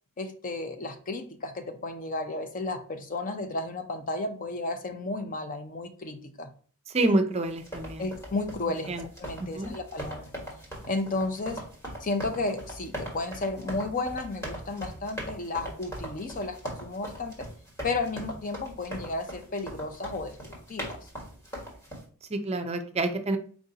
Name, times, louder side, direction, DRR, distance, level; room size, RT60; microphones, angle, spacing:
voice 1, 0.2-6.5 8.0-8.9 9.2-10.3 10.9-11.6 12.0-17.5 17.8-21.0, left 2 dB, 40° left, 7 dB, 0.6 m, -33 dB
voice 2, 6.9-8.1 8.9-9.0 9.4-9.7 22.3-23.4, right 2 dB, 30° right, 7 dB, 0.5 m, -27 dB
sound 1, 7.5-22.0, right 1 dB, 15° left, 1.4 m, -40 dB
4.6 x 2.6 x 3.9 m, 0.44 s
head